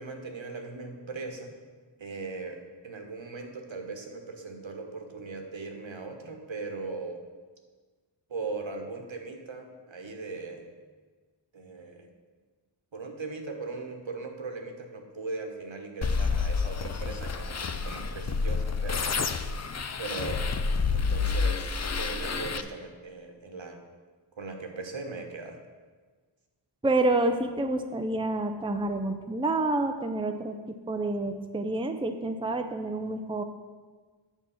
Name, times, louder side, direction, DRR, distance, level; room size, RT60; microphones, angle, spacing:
voice 1, 0.0-1.6 2.0-7.2 8.3-10.7 11.5-12.1 12.9-19.1 20.0-20.5 20.9-23.8 24.4-25.6, right 3 dB, 70° right, 4 dB, 1.2 m, -39 dB
sound 1, 16.0-22.6, left 5 dB, 35° left, 0.5 m, -29 dB
voice 2, 26.8-30.6 30.9-33.4, right 2 dB, 10° right, 6 dB, 0.5 m, -28 dB
8.5 x 4.5 x 7.1 m, 1.4 s
wide cardioid pair, 45°, 47 cm